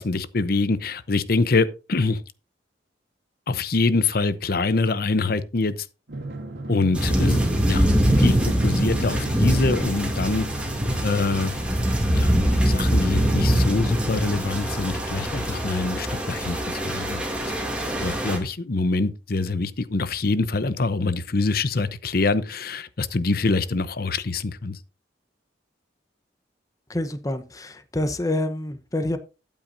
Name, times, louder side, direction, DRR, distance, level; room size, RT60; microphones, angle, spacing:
voice 1, 0.0-2.2 3.5-5.7 6.7-7.9 8.2-10.5 11.0-11.5 12.1-12.3 12.6-17.2 18.0-24.8, left 3 dB, 55° left, 0.8 m, -24 dB
Drum, 6.1-11.7, right 2 dB, 80° right, 2.2 m, -36 dB
sound 1, 6.9-18.4, equal, 5° right, 2.5 m, -23 dB
voice 2, 26.9-29.2, left 1 dB, 20° left, 0.9 m, -27 dB
13.0 x 9.0 x 2.7 m
head